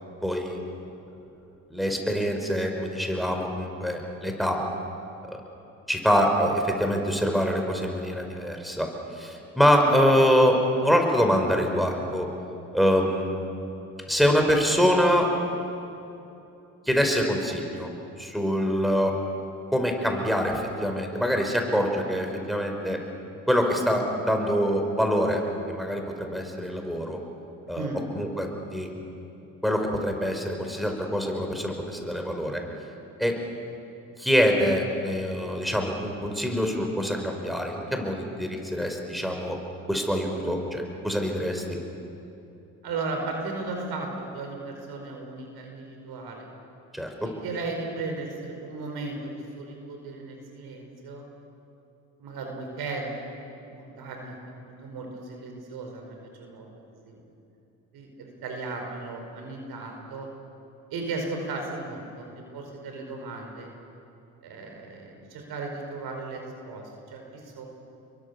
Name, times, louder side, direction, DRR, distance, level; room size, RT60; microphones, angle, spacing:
voice 1, 0.2-0.6 1.7-4.6 5.3-5.4 5.9-8.9 9.1-12.3 12.7-13.8 14.1-15.3 16.9-17.9 18.2-19.1 19.7-23.0 23.5-25.4 25.7-27.2 27.7-27.9 28.1-28.9 29.6-32.6 33.2-33.4 34.2-39.6 39.9-41.6 46.9-47.3, equal, ahead, 3 dB, 5.3 m, -25 dB
voice 2, 27.7-28.1 42.8-46.5 47.2-51.2 52.2-53.3 53.6-56.7 57.0-57.2 57.9-60.3 60.9-63.7 64.4-67.7, right 3 dB, 65° right, 2 dB, 5.2 m, -36 dB
28.5 x 23.0 x 7.1 m, 2.9 s
hypercardioid pair, 50°, 41 cm